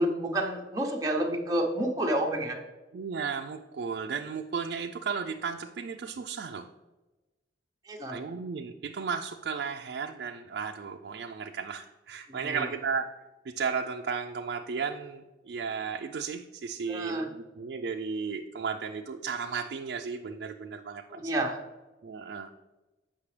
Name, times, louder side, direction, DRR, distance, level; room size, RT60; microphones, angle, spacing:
voice 1, 0.0-2.6 7.9-8.1 12.3-12.6 16.9-17.3 21.1-21.6, right 1 dB, 20° right, 0 dB, 0.8 m, -29 dB
voice 2, 2.9-6.7 8.1-13.0 13.4-21.3 22.0-22.5, right 5 dB, 60° right, 3 dB, 0.3 m, -34 dB
8.3 x 5.8 x 3.2 m, 1.1 s
head